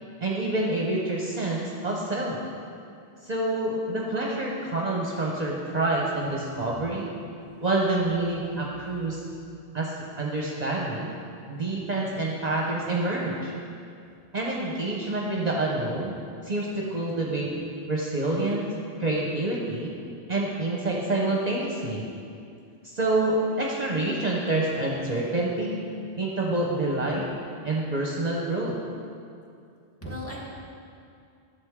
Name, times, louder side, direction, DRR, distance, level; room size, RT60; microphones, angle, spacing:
voice 1, 0.2-2.4 3.2-7.1 7.6-9.2 9.7-11.1 11.5-13.5 14.3-16.2 16.4-17.5 17.9-18.7 19.0-19.9 20.3-22.0 22.8-25.8 26.2-27.3 27.6-28.8, right 2 dB, 45° right, -3 dB, 0.9 m, -27 dB
voice 2, 30.0-30.4, equal, 15° left, -4 dB, 1.5 m, -39 dB
11.5 x 7.3 x 3.6 m, 2.4 s
omnidirectional pair, 1.1 m